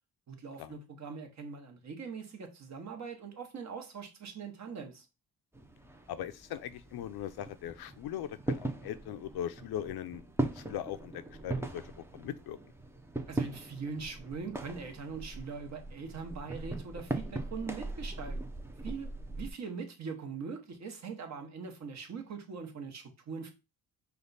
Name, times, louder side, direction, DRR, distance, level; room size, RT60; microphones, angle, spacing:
voice 1, 0.3-5.1 13.3-18.4 18.8-23.5, right 5 dB, 45° right, 1.0 m, -42 dB
sound 1, 5.5-19.5, right 2 dB, 5° right, 0.5 m, -40 dB
voice 2, 6.1-12.6, left 10 dB, 85° left, 0.6 m, -40 dB
5.2 x 2.3 x 4.0 m
cardioid pair, 120°, 37 cm